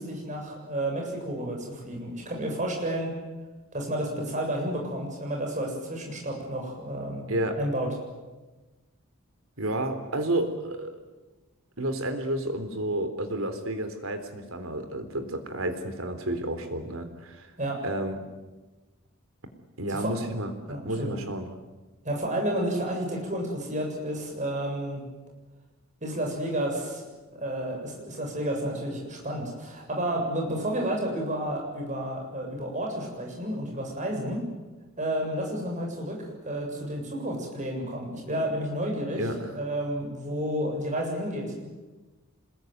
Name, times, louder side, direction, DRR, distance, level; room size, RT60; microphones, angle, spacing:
voice 1, 0.0-3.1 3.7-7.3 7.6-7.9 17.6-17.9 19.9-20.1 20.7-21.2 22.0-25.0 26.0-27.1 27.3-34.4 35.0-39.3 39.5-41.7, right 1 dB, 35° right, 1 dB, 7.5 m, -31 dB
voice 2, 9.6-11.0 11.8-17.5 17.8-18.2 19.8-21.5 39.2-39.5, right 1 dB, 80° right, 8 dB, 3.7 m, -31 dB
26.0 x 21.5 x 9.4 m, 1.2 s
head